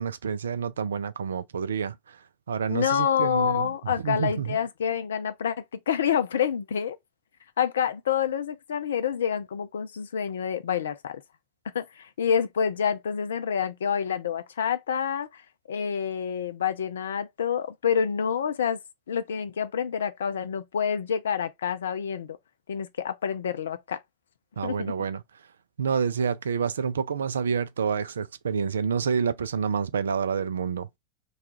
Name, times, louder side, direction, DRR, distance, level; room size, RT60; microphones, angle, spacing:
voice 1, 0.0-2.2 2.5-3.7 4.0-4.6 24.6-25.2 25.8-30.9, right 6 dB, 80° right, 0.3 m, -28 dB
voice 2, 2.7-7.0 7.6-11.2 11.7-15.4 15.7-18.8 19.1-22.4 22.7-24.0 24.6-24.9, left 8 dB, 75° left, 0.4 m, -27 dB
2.3 x 2.2 x 2.8 m
figure-of-eight pair, 85°, 0 cm